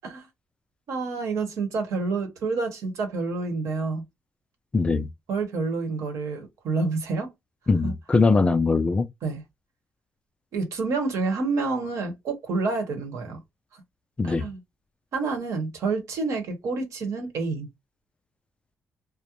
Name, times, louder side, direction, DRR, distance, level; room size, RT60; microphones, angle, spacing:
voice 1, 0.9-4.0 5.3-7.3 7.8-7.9 9.2-9.4 10.5-13.4 14.2-14.6 15.1-17.7, right 3 dB, 70° right, 1.0 m, -28 dB
voice 2, 4.7-5.1 7.7-9.1 14.2-14.5, left 3 dB, 20° left, 0.3 m, -21 dB
2.4 x 2.0 x 2.9 m
cardioid pair, 120°, 5 cm